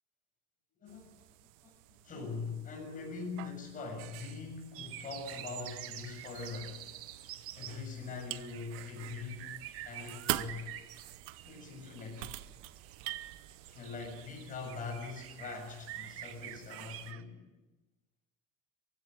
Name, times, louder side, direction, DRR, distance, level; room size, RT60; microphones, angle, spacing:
voice 1, 0.8-1.3 1.6-1.7 2.0-6.8 7.5-9.5 9.8-10.7 11.4-12.3 13.7-17.4, left 4 dB, 25° left, 2 dB, 7.4 m, -42 dB
sound 1, 0.9-17.1, right 16 dB, 80° right, 1.0 m, -46 dB
sound 2, 4.7-17.2, right 12 dB, 50° right, 1.3 m, -48 dB
22.5 x 16.0 x 9.1 m, 1.1 s
cardioid pair, 175°, 30 cm